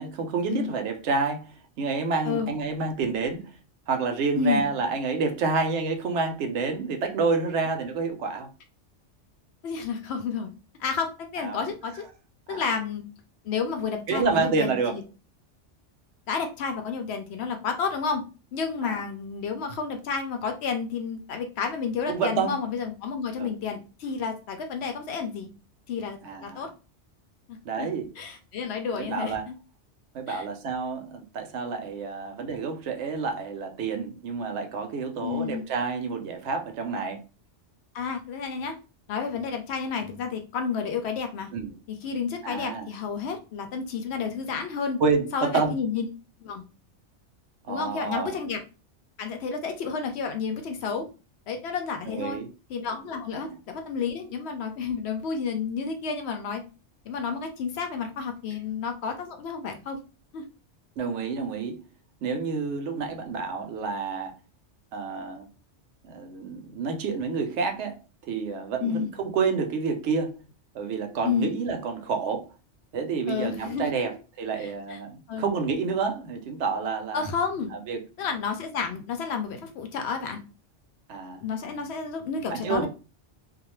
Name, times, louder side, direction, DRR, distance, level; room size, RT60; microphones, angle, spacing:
voice 1, 0.0-3.6 3.9-8.5 11.4-11.6 12.5-12.6 14.1-14.9 18.8-19.0 22.1-22.5 23.4-23.5 26.2-26.7 27.6-28.1 28.9-29.4 30.1-37.2 41.5-41.7 42.4-42.9 45.0-45.8 47.7-48.4 52.1-52.5 53.3-53.6 61.0-61.8 62.2-64.3 64.9-65.5 66.0-68.0 68.3-70.4 70.7-72.5 72.9-74.1 74.4-77.2 77.7-78.0 81.1-81.4 82.5-82.9, right 4 dB, 75° right, 0.9 m, -29 dB
voice 2, 4.3-4.7 9.6-10.5 10.8-12.0 12.5-13.0 13.4-15.0 16.3-18.2 18.5-25.5 25.9-26.7 27.5-27.9 28.2-29.5 30.3-30.4 35.2-35.6 37.9-38.8 39.1-41.5 41.9-45.0 45.3-46.0 46.4-46.6 47.7-48.6 49.2-51.0 51.5-52.4 52.7-56.6 57.0-60.0 60.3-60.4 68.8-69.1 71.2-71.5 73.3-74.0 74.6-75.0 75.3-75.5 77.1-77.7 78.2-80.4 81.4-82.9, left 5 dB, 70° left, 0.8 m, -31 dB
2.3 x 2.1 x 3.0 m
omnidirectional pair, 1.2 m